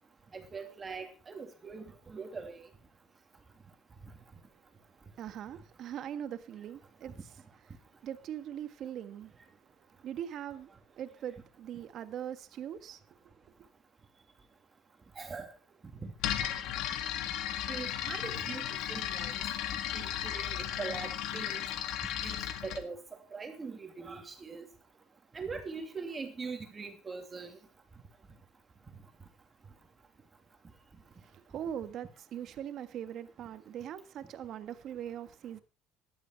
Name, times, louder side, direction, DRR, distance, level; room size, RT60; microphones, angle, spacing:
voice 1, 0.3-2.6 15.2-15.5 16.0-16.1 17.7-19.3 19.9-21.6 22.2-23.0 23.3-24.7 25.3-27.6, right 4 dB, 20° right, 2.8 m, -42 dB
voice 2, 5.2-7.2 8.0-9.3 10.0-13.2 13.6-13.7 31.2-35.6, right 10 dB, 50° right, 1.5 m, -41 dB
sound 1, 16.2-22.8, left 10 dB, 65° left, 1.8 m, -35 dB
14.5 x 12.0 x 4.5 m
cardioid pair, 130°, 0 cm